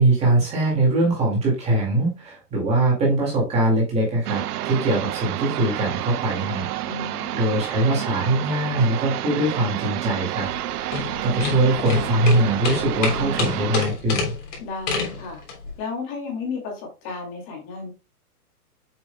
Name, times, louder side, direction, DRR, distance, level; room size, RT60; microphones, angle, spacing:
voice 1, 0.0-6.7 7.1-10.5 11.2-14.3, right 2 dB, 15° right, -3 dB, 2.0 m, -22 dB
sound 1, 4.3-13.9, right 13 dB, 75° right, 0.6 m, -29 dB
voice 2, 6.8-7.4 14.6-15.4 15.8-17.9, left 4 dB, 25° left, 1 dB, 2.3 m, -33 dB
sound 2, 10.4-15.7, left 4 dB, 50° left, 3.4 m, -28 dB
7.4 x 6.1 x 2.2 m, 0.28 s
hypercardioid pair, 155°, 47 cm